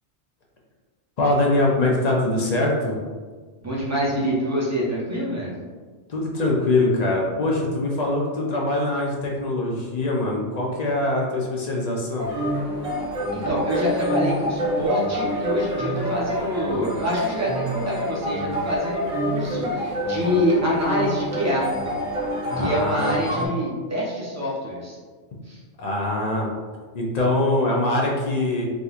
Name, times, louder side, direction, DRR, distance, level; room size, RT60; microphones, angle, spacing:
voice 1, 1.2-3.0 6.1-12.3 22.5-23.1 25.8-26.5 26.9-28.6, left 2 dB, 45° left, -2 dB, 0.6 m, -23 dB
voice 2, 3.6-5.5 13.3-21.7 22.6-25.0 25.4-25.6, equal, 15° right, -6 dB, 0.7 m, -26 dB
sound 1, 12.2-23.5, equal, 85° right, 1.5 m, -27 dB
3.7 x 2.8 x 2.4 m, 1.5 s
omnidirectional pair, 1.2 m